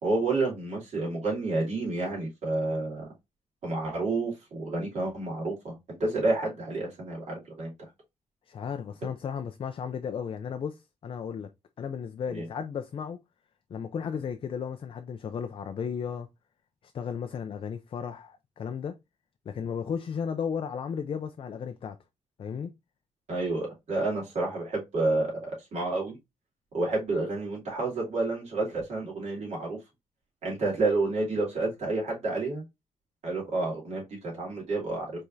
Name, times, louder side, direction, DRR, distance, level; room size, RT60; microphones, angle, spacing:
voice 1, 0.0-3.1 3.6-7.7 12.3-12.5 23.3-26.2 26.7-29.8 30.4-32.6 33.2-35.1, right 2 dB, 65° right, 2.7 m, -29 dB
voice 2, 8.5-11.5 11.8-13.2 13.7-16.3 16.9-19.0 19.5-22.0 22.4-22.7, left 7 dB, 45° left, 0.4 m, -34 dB
4.9 x 3.4 x 2.6 m
cardioid pair, 120°, 12 cm